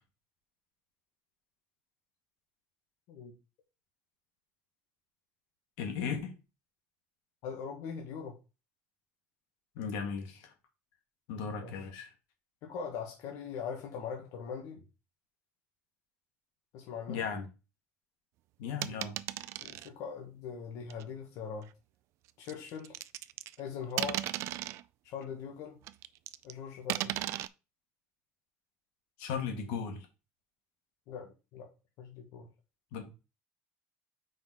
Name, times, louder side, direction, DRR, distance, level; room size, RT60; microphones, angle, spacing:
voice 1, 5.8-6.4 9.8-10.5 11.3-12.1 17.1-17.5 18.6-19.2 29.2-30.1 32.9-33.1, left 6 dB, 85° left, 1.7 m, -36 dB
voice 2, 7.4-8.3 11.6-11.9 12.6-14.8 16.7-17.3 19.5-21.7 22.4-23.0 23.6-24.2 25.0-25.8 26.4-27.2 31.1-31.7 32.0-32.5, left 6 dB, 65° left, 1.3 m, -41 dB
sound 1, 18.8-19.9 20.9-21.0 22.5-23.6 24.0-24.8 25.9-26.5 26.9-27.5, right 15 dB, 55° right, 0.3 m, -36 dB
5.2 x 4.1 x 4.6 m
cardioid pair, 145°, 6 cm